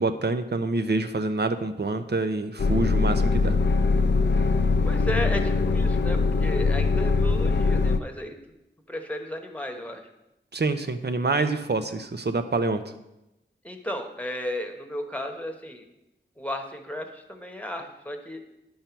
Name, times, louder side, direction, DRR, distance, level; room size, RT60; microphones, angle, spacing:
voice 1, 0.0-3.6 10.5-12.8, right 3 dB, 60° right, 9 dB, 0.7 m, -26 dB
sound 1, 2.6-8.0, left 4 dB, 65° left, 0.5 m, -22 dB
voice 2, 4.8-8.3 8.9-10.0 13.6-15.8 16.4-18.4, equal, 5° left, 4 dB, 1.1 m, -34 dB
10.5 x 5.6 x 4.5 m, 0.90 s
wide cardioid pair, 60°, 19 cm